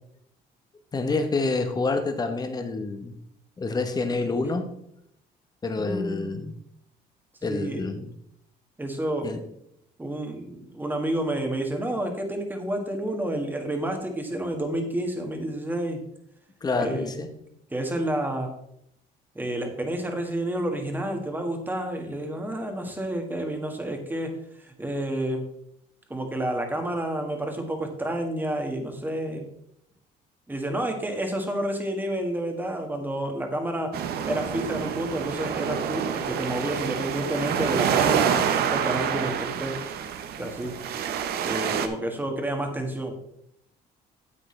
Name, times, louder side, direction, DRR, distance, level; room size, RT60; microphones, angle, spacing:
voice 1, 0.9-3.1 3.6-4.7 5.6-6.5 7.4-8.0 9.2-9.4 16.6-17.3, left 3 dB, 25° left, 7 dB, 1.1 m, -27 dB
voice 2, 5.8-6.6 7.4-8.0 8.8-9.3 10.0-16.0 16.7-17.1 17.7-18.5 19.4-25.5 26.1-29.5 30.5-34.0 34.2-39.8 40.4-40.7 41.4-43.2, right 1 dB, 10° right, 4 dB, 1.7 m, -30 dB
sound 1, 33.9-41.9, right 8 dB, 70° right, 0.9 m, -27 dB
9.8 x 7.9 x 3.3 m, 0.75 s
cardioid pair, 110°, 17 cm